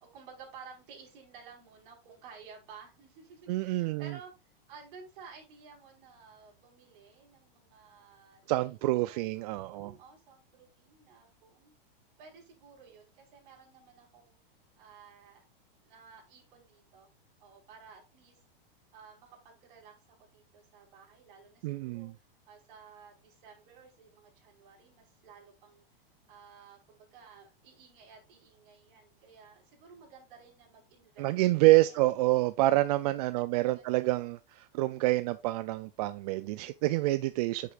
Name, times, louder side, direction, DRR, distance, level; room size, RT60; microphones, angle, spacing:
voice 1, 0.0-4.3 4.7-8.7 9.0-11.7 12.2-14.4 14.7-15.4 15.8-17.1 17.4-18.4 18.9-25.8 26.3-31.5 31.8-32.0 32.8-34.4, right 5 dB, 60° right, 4.8 m, -54 dB
voice 2, 3.5-4.1 8.5-9.9 21.6-22.1 31.2-37.7, right 18 dB, 45° right, 0.4 m, -27 dB
9.7 x 6.7 x 2.5 m
hypercardioid pair, 140°, 29 cm